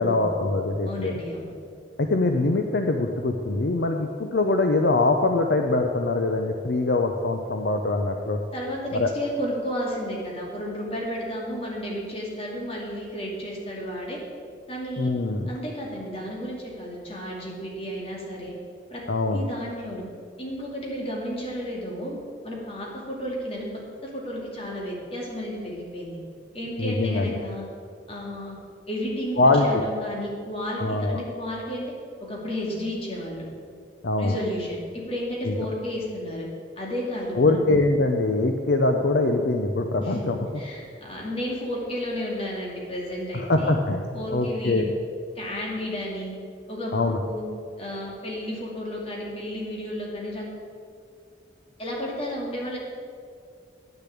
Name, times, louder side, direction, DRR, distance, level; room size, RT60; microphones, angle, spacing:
voice 1, 0.0-1.1 2.0-8.4 8.9-9.1 15.0-15.5 19.1-19.4 26.8-27.4 29.4-29.8 30.8-31.2 34.0-34.4 35.4-35.6 37.4-40.6 43.3-44.8 46.9-47.2, left 2 dB, 65° left, 4 dB, 0.7 m, -23 dB
voice 2, 0.9-1.5 8.5-14.2 14.7-15.1 15.5-18.5 18.9-19.0 19.3-20.0 20.4-22.2 22.4-26.2 26.5-27.6 28.1-28.6 28.9-31.9 32.2-33.5 34.2-36.5 36.8-37.6 40.0-43.7 44.1-44.8 45.3-46.4 46.7-47.4 47.8-50.5 51.8-52.8, equal, 30° left, -3 dB, 2.5 m, -32 dB
10.0 x 6.7 x 8.5 m, 2.3 s
head